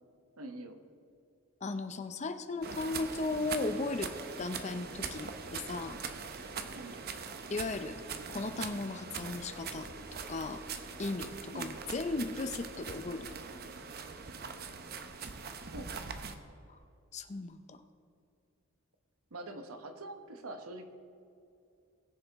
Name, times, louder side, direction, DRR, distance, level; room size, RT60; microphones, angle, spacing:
voice 1, 0.4-0.8 6.5-7.0 11.5-11.8 15.7-15.9 19.3-20.9, right 2 dB, 85° right, 6 dB, 1.1 m, -44 dB
voice 2, 1.6-4.1 4.4-6.0 7.5-8.0 8.3-10.6 11.0-13.3 16.7-16.8 17.1-17.8, left 3 dB, 30° left, 9 dB, 0.5 m, -36 dB
sound 1, 2.6-16.4, right 5 dB, 45° right, 0.7 m, -42 dB
sound 2, 4.8-13.5, equal, 10° right, 1.7 m, -57 dB
20.0 x 6.9 x 3.5 m, 2.6 s
head